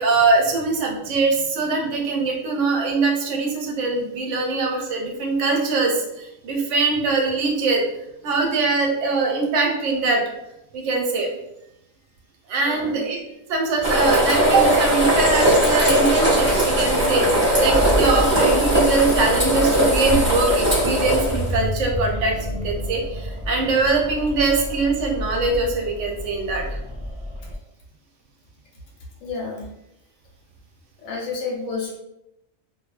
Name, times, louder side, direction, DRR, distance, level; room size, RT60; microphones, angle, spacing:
voice 1, 0.0-7.9 8.2-10.3 10.7-11.3 12.5-13.2 13.5-26.6, right 3 dB, 70° right, 1 dB, 0.9 m, -22 dB
voice 2, 12.6-13.0 18.2-18.3 29.2-29.7 31.0-32.0, left 4 dB, 75° left, -2 dB, 1.0 m, -30 dB
sound 1, 13.8-21.5, right 1 dB, 10° right, 0.9 m, -19 dB
sound 2, 17.6-27.5, left 1 dB, 50° left, 0.4 m, -30 dB
2.5 x 2.1 x 2.3 m, 0.85 s
omnidirectional pair, 1.4 m